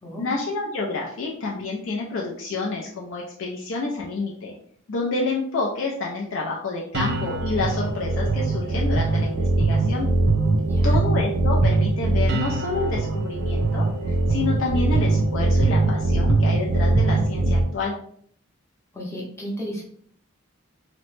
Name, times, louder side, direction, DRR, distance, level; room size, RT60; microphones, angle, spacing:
voice 1, 0.2-4.5 4.9-10.1 10.8-18.0, left 3 dB, 65° left, -2 dB, 0.4 m, -28 dB
sound 1, 6.9-17.6, right 2 dB, 50° right, 0.3 m, -21 dB
voice 2, 10.5-11.0 18.9-19.8, equal, 10° left, -3 dB, 0.7 m, -34 dB
2.9 x 2.1 x 3.1 m, 0.62 s
head